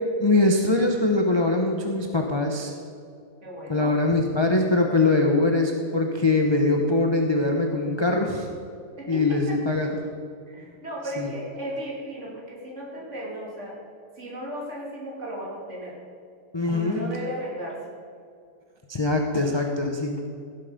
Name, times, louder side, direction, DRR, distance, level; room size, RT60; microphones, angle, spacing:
voice 1, 0.2-2.7 3.7-8.5 9.1-9.9 11.2-11.3 16.5-17.0 18.9-20.2, left 2 dB, 25° left, 2 dB, 0.6 m, -22 dB
voice 2, 3.4-4.0 9.0-9.8 10.5-13.8 14.2-16.0 16.7-17.8, equal, 45° right, -4 dB, 3.0 m, -35 dB
16.0 x 8.0 x 5.1 m, 2.4 s
omnidirectional pair, 1.8 m